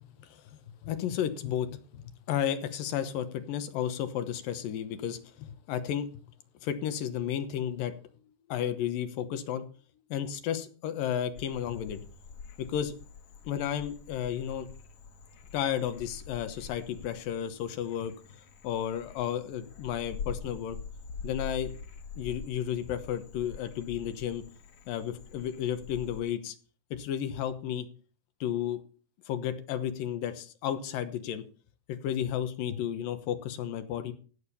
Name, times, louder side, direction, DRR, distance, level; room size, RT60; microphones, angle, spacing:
voice 1, 0.2-6.1 6.6-7.9 8.5-9.6 10.1-12.0 12.6-12.9 13.4-14.7 15.5-18.1 18.6-20.8 21.2-21.8 22.2-24.4 24.9-26.6 26.9-27.9 28.4-28.8 29.3-31.4 31.9-34.1, left 10 dB, 90° left, 9 dB, 2.8 m, -33 dB
Frog, 11.4-26.2, left 5 dB, 60° left, 2.4 m, -45 dB
16.0 x 7.1 x 5.6 m, 0.39 s
omnidirectional pair, 3.9 m